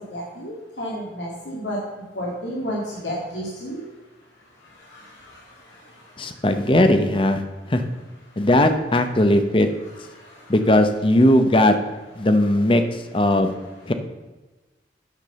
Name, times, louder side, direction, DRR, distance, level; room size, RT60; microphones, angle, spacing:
voice 1, 0.1-1.8 2.1-3.8 4.9-5.4 5.7-5.8 10.1-10.4, equal, 85° left, -5 dB, 2.2 m, -31 dB
voice 2, 6.2-7.4 7.7-7.8 8.4-9.7 10.5-11.8 12.2-12.8 13.1-13.5 13.9-14.0, left 1 dB, 30° left, 8 dB, 0.8 m, -18 dB
9.3 x 6.0 x 6.8 m, 1.2 s
head